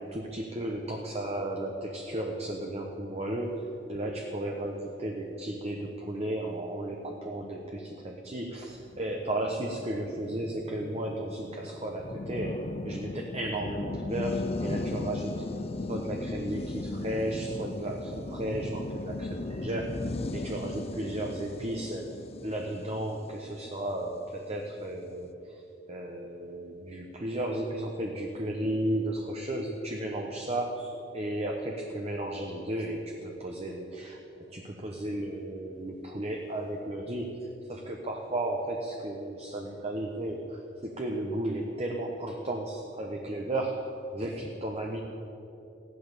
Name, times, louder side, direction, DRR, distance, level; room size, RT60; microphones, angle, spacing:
voice 1, 0.0-15.5 15.9-25.6 25.9-34.2 34.5-43.9 44.1-45.0, right 1 dB, 35° right, 1 dB, 1.1 m, -34 dB
sound 1, 8.8-24.2, left 2 dB, 35° left, 0.5 m, -37 dB
15.0 x 11.5 x 6.8 m, 2.9 s
head